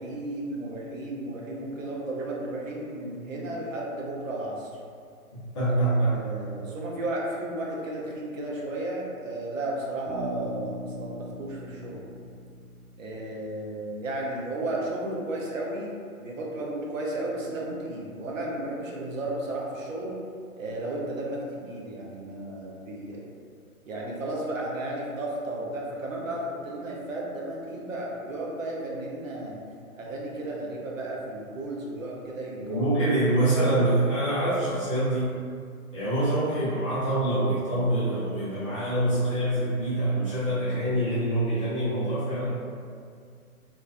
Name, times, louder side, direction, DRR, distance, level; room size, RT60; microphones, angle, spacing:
voice 1, 0.0-4.7 6.1-12.0 13.0-20.1 20.6-23.2 23.9-29.6 29.9-32.8, right 1 dB, 60° right, -3 dB, 0.6 m, -33 dB
voice 2, 5.5-6.1 32.6-35.3 35.9-42.5, right 1 dB, 20° left, -13 dB, 0.5 m, -25 dB
Bass guitar, 10.1-13.8, equal, 35° right, 0.9 m, -40 dB
2.3 x 2.2 x 2.3 m, 2.2 s
figure-of-eight pair, 135°, 44 cm